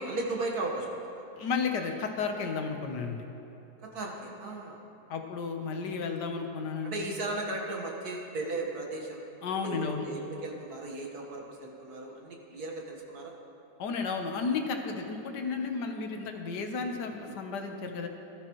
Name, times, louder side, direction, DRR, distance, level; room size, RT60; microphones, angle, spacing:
voice 1, 0.0-1.2 3.8-4.8 6.8-9.2 9.6-13.3, right 2 dB, 65° right, 0 dB, 1.9 m, -36 dB
voice 2, 1.4-3.2 5.1-7.0 9.4-10.0 13.8-18.1, left 5 dB, 80° left, 4 dB, 1.6 m, -33 dB
18.0 x 12.5 x 3.1 m, 3.0 s
omnidirectional pair, 1.8 m